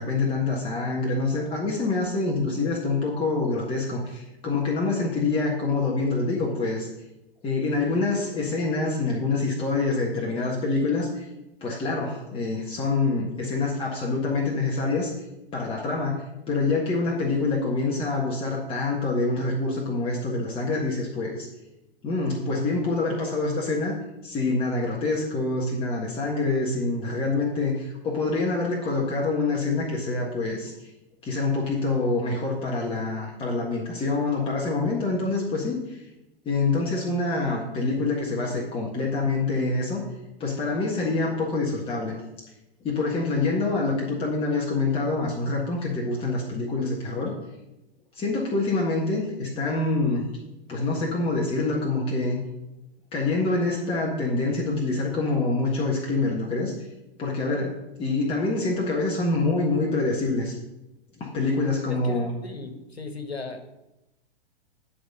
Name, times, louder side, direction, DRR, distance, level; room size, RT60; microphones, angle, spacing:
voice 1, 0.0-6.9 7.4-11.3 11.6-15.1 15.5-21.5 22.0-23.9 24.2-30.9 31.2-36.0 36.4-40.0 40.4-42.1 42.8-47.3 48.1-50.3 50.7-52.4 53.1-56.9 57.2-60.5 61.2-62.3, left 3 dB, 15° left, -3 dB, 1.5 m, -26 dB
voice 2, 61.9-63.6, left 3 dB, 80° left, 7 dB, 1.5 m, -37 dB
11.0 x 4.3 x 6.7 m, 0.94 s
figure-of-eight pair, 110°, 31 cm